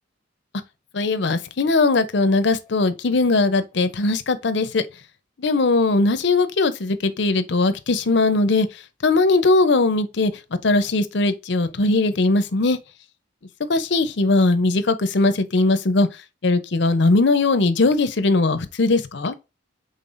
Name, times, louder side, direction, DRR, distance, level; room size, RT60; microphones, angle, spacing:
voice 1, 0.9-4.8 5.4-8.7 9.0-10.3 10.6-12.8 13.7-16.1 16.4-19.3, left 3 dB, 60° left, 0.6 m, -19 dB
5.5 x 3.7 x 2.5 m
head